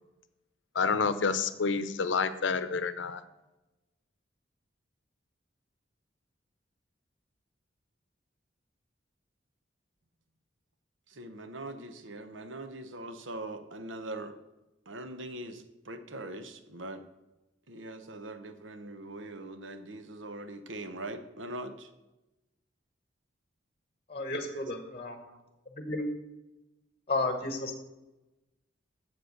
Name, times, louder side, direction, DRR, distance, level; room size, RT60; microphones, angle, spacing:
voice 1, 0.7-3.2, left 5 dB, 80° left, 13 dB, 0.7 m, -28 dB
voice 2, 11.1-14.3 14.9-17.0 17.7-21.9 24.5-24.7 25.3-25.4, right 2 dB, 90° right, 10 dB, 0.9 m, -42 dB
voice 3, 24.1-25.2 25.8-26.1 27.1-27.8, left 2 dB, 30° left, 6 dB, 1.2 m, -32 dB
7.9 x 7.5 x 6.5 m, 1.0 s
head